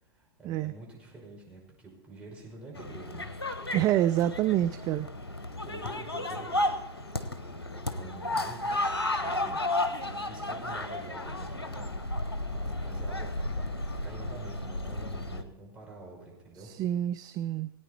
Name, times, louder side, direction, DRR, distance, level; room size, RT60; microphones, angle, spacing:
voice 1, 0.0-3.3 5.5-6.5 7.4-8.7 9.2-9.6 10.0-11.9 12.3-16.7, right 3 dB, 10° right, -4 dB, 5.5 m, -47 dB
sound 1, 2.7-15.4, left 1 dB, 85° left, 1.1 m, -33 dB
voice 2, 3.7-5.1 16.6-17.7, right 12 dB, 30° right, 12 dB, 0.5 m, -27 dB
18.5 x 9.3 x 4.4 m, 0.94 s
figure-of-eight pair, 100°, 13 cm